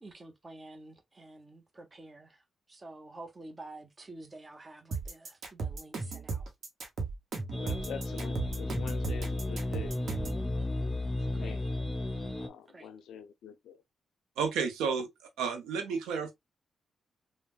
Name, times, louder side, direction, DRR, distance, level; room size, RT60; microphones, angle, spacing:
voice 1, 0.0-2.4 2.7-6.4 11.3-11.6 12.7-12.9, right 2 dB, 35° right, 0.7 m, -49 dB
sound 1, 4.9-10.4, right 4 dB, 70° right, 0.9 m, -36 dB
sound 2, 7.5-12.5, left 2 dB, 20° left, 0.6 m, -34 dB
voice 2, 7.6-10.0 11.2-11.6 12.4-13.8, left 8 dB, 80° left, 0.4 m, -45 dB
voice 3, 14.4-15.1 15.4-16.3, right 6 dB, 90° right, 0.6 m, -31 dB
3.2 x 2.1 x 2.3 m
supercardioid pair, 50°, 0 cm